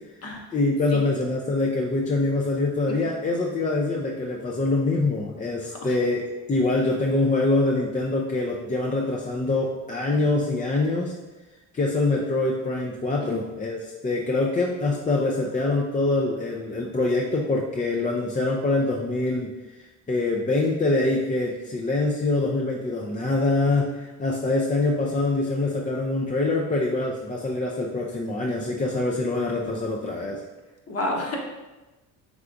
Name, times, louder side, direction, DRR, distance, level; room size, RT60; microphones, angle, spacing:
voice 1, 0.5-11.1 11.7-19.5 19.8-30.4, left 2 dB, 20° left, -1 dB, 0.5 m, -24 dB
voice 2, 30.9-31.4, left 1 dB, 35° left, 0 dB, 1.1 m, -30 dB
4.9 x 3.3 x 2.6 m, 1.1 s
hypercardioid pair, 60°, 43 cm